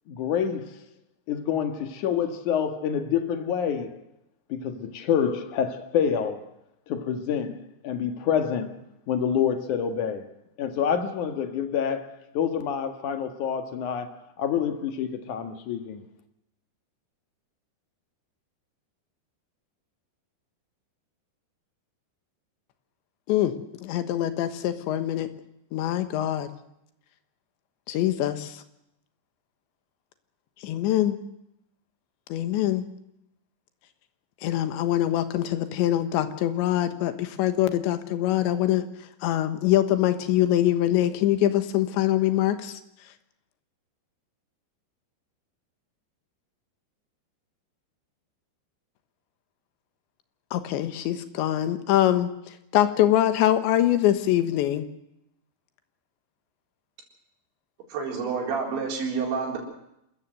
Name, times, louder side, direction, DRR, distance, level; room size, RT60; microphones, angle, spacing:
voice 1, 0.1-0.8 1.3-4.0 4.5-6.4 6.9-8.8 9.1-10.2 10.6-12.0 12.3-14.1 14.4-16.0, left 8 dB, 55° left, 8 dB, 2.6 m, -27 dB
voice 2, 23.8-25.3 25.7-26.5 27.9-28.6 30.6-31.2 32.3-32.9 34.4-38.8 39.2-42.7 50.5-52.3 52.7-54.9, left 13 dB, 85° left, 10 dB, 3.7 m, -23 dB
voice 3, 57.9-59.6, right 5 dB, 85° right, 0 dB, 6.4 m, -28 dB
27.5 x 14.0 x 7.9 m, 0.82 s
omnidirectional pair, 5.1 m